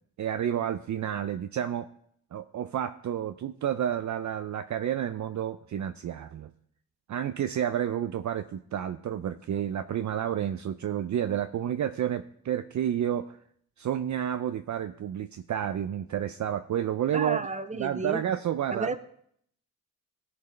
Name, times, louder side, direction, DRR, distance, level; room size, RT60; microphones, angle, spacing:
voice 1, 0.2-1.9 2.3-6.5 7.1-13.4 13.8-17.4 17.8-19.0, right 10 dB, 50° right, 9 dB, 0.5 m, -30 dB
voice 2, 17.1-18.2 18.7-19.0, right 3 dB, 20° right, 9 dB, 1.0 m, -31 dB
15.5 x 6.9 x 3.2 m, 0.68 s
supercardioid pair, 60°, 38 cm